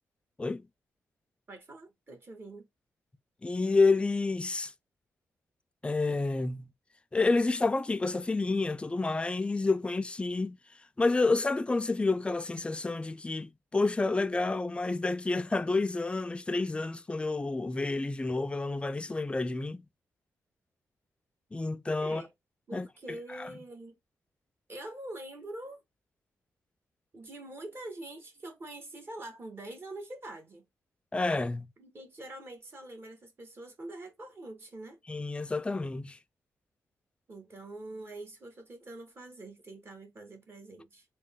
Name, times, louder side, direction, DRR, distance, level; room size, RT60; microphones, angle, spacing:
voice 1, 1.5-2.7 22.0-22.3 22.7-23.9 24.7-25.8 27.1-30.7 31.8-35.0 37.3-41.0, right 1 dB, 40° right, 1.4 m, -44 dB
voice 2, 3.4-4.7 5.8-6.7 7.1-10.6 11.0-19.9 21.5-22.2 22.7-22.9 23.3-23.5 31.1-31.7 35.1-36.2, left 3 dB, 20° left, 0.4 m, -29 dB
3.6 x 2.3 x 3.6 m
cardioid pair, 85°, 6 cm